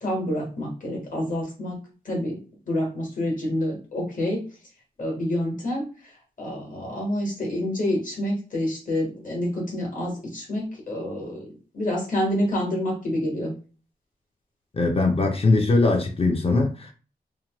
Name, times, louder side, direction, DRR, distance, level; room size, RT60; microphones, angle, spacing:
voice 1, 0.0-1.8 2.0-2.4 2.7-4.4 5.0-5.8 6.4-11.5 11.7-13.5, left 1 dB, 55° left, 1.3 m, -27 dB
voice 2, 14.7-16.9, left 3 dB, 35° left, 0.5 m, -21 dB
2.9 x 2.1 x 2.9 m
wide cardioid pair, 145°, 17 cm